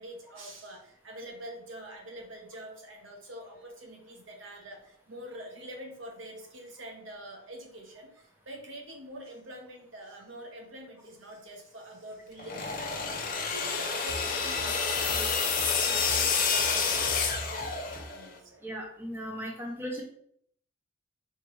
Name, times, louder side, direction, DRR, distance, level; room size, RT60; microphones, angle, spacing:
voice 1, 0.0-17.0 17.4-18.6, right 1 dB, 70° right, 1 dB, 1.0 m, -45 dB
sound 1, 12.4-18.2, left 5 dB, 45° left, 0.5 m, -29 dB
sound 2, 14.1-18.3, equal, 70° left, 1.1 m, -43 dB
voice 2, 18.6-20.0, equal, 10° right, 0 dB, 0.6 m, -37 dB
4.6 x 3.2 x 3.1 m, 0.66 s
head